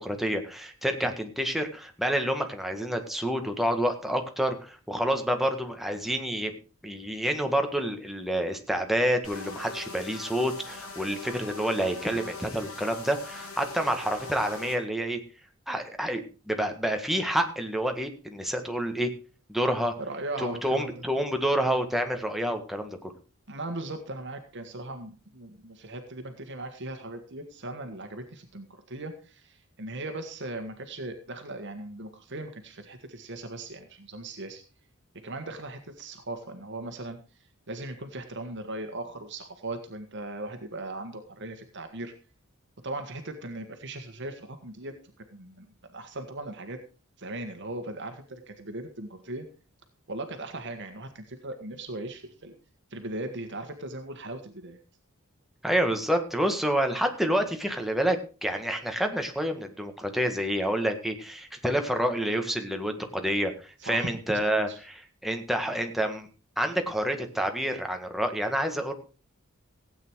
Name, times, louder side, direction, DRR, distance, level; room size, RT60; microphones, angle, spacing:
voice 1, 0.0-6.5 6.8-15.2 15.7-16.2 16.5-19.1 19.5-19.9 20.4-23.1 55.6-66.3 66.6-68.9, equal, ahead, 4 dB, 1.7 m, -28 dB
sound 1, 9.2-14.8, left 3 dB, 90° left, 3.3 m, -41 dB
voice 2, 20.0-20.9 23.5-34.6 35.2-37.2 37.7-42.1 42.8-44.9 45.3-46.8 47.2-49.5 50.1-52.5 52.9-54.8 63.8-64.8, right 2 dB, 55° right, 6 dB, 1.6 m, -38 dB
16.5 x 9.0 x 4.7 m, 0.35 s
head